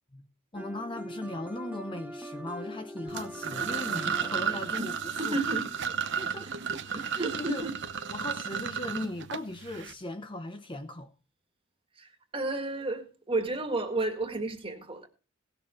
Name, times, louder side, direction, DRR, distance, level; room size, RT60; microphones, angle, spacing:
voice 1, 0.5-5.5 6.1-6.5 6.8-7.7 8.1-11.1, left 1 dB, 25° left, 0.8 m, -38 dB
sound 1, 0.5-6.4, right 1 dB, 5° right, 0.7 m, -43 dB
sound 2, 3.1-9.9, right 7 dB, 55° right, 0.9 m, -33 dB
voice 2, 5.2-5.6 6.9-7.7 12.0-15.1, right 2 dB, 25° right, 1.8 m, -32 dB
18.0 x 6.9 x 4.3 m
head